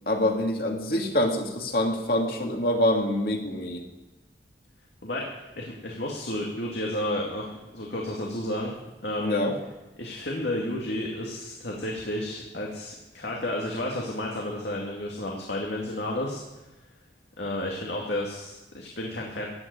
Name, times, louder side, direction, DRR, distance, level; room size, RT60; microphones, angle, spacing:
voice 1, 0.1-3.8 9.2-9.6, left 1 dB, 55° left, 2 dB, 2.5 m, -25 dB
voice 2, 5.0-8.7 9.0-9.4 10.0-16.4 17.4-19.5, left 1 dB, 75° left, -1 dB, 2.3 m, -32 dB
15.5 x 8.0 x 9.5 m, 1.1 s
head